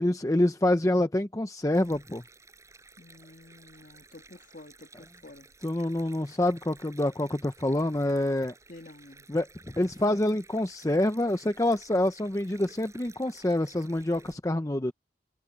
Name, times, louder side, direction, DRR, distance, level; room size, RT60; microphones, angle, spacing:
voice 1, 0.0-2.2 5.6-8.5 9.3-14.9, left 1 dB, 20° left, 0.6 m, -27 dB
Stream, 1.7-14.3, right 3 dB, 15° right, 6.9 m, -55 dB
voice 2, 3.0-5.5 8.7-9.3, left 2 dB, 50° left, 2.0 m, -50 dB
head